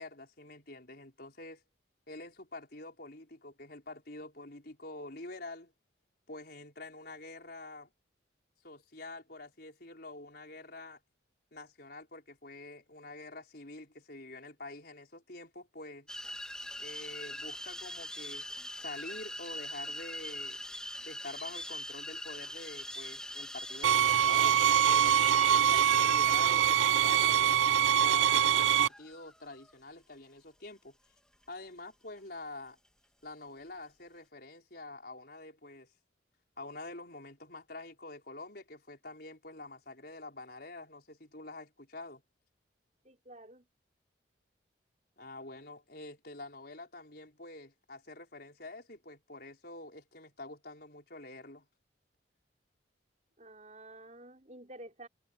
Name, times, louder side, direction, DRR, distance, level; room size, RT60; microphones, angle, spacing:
voice 1, 0.0-1.6 2.1-5.7 6.3-7.9 8.6-11.0 11.5-16.1 16.8-20.6 21.0-25.2 25.6-31.0 31.5-32.8 33.2-35.9 36.6-42.2 45.2-51.7, left 2 dB, 55° left, 5.1 m, -47 dB
sound 1, 16.1-29.7, left 1 dB, 5° left, 1.8 m, -43 dB
sound 2, 23.8-28.9, right 10 dB, 85° right, 0.4 m, -24 dB
voice 2, 43.0-43.7 53.4-55.1, right 1 dB, 40° right, 5.0 m, -50 dB
head